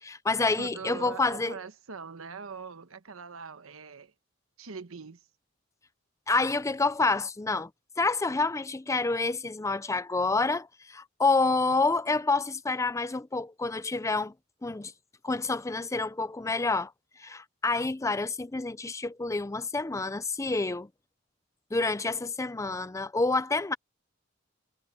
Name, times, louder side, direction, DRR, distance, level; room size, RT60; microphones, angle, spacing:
voice 1, 0.0-1.5 6.3-7.7 8.0-14.3 14.6-14.9 15.2-16.9 17.2-20.9 21.7-23.7, left 3 dB, 15° left, 0.5 m, -28 dB
voice 2, 0.6-4.1 4.6-5.3, right 5 dB, 85° right, 1.1 m, -42 dB
head